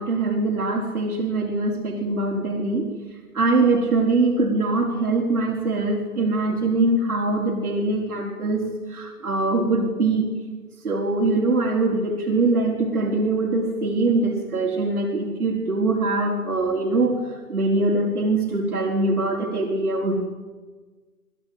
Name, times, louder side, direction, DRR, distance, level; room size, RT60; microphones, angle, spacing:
voice 1, 0.0-2.9 3.3-8.6 8.9-10.3 10.8-17.2 17.5-20.3, right 2 dB, 70° right, 0 dB, 5.0 m, -22 dB
25.0 x 20.5 x 8.0 m, 1.3 s
figure-of-eight pair, 135°, 45 cm